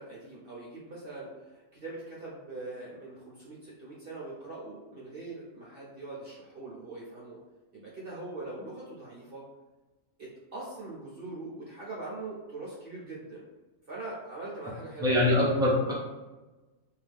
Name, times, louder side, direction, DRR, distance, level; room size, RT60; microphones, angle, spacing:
voice 1, 0.0-7.4 7.7-9.4 10.2-13.4 13.9-15.3, right 2 dB, 55° right, -5 dB, 0.6 m, -42 dB
voice 2, 15.0-15.9, left 1 dB, 5° right, -6 dB, 0.4 m, -23 dB
2.7 x 2.2 x 3.3 m, 1.2 s
omnidirectional pair, 1.6 m